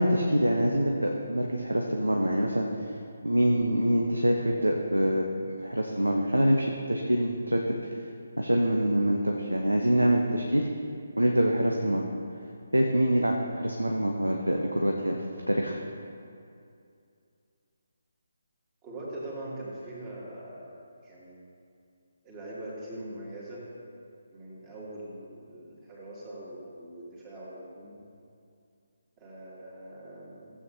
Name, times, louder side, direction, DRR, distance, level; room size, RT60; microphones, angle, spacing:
voice 1, 0.0-2.7 3.2-7.8 8.4-10.7 11.2-12.1 12.7-15.2 15.5-15.8, equal, 85° right, 1 dB, 0.8 m, -25 dB
voice 2, 18.8-20.8 21.0-21.4 22.2-23.7 24.3-28.0 29.2-30.5, right 1 dB, 20° right, -7 dB, 2.3 m, -42 dB
15.0 x 8.2 x 2.8 m, 2.4 s
figure-of-eight pair, 145°, 0 cm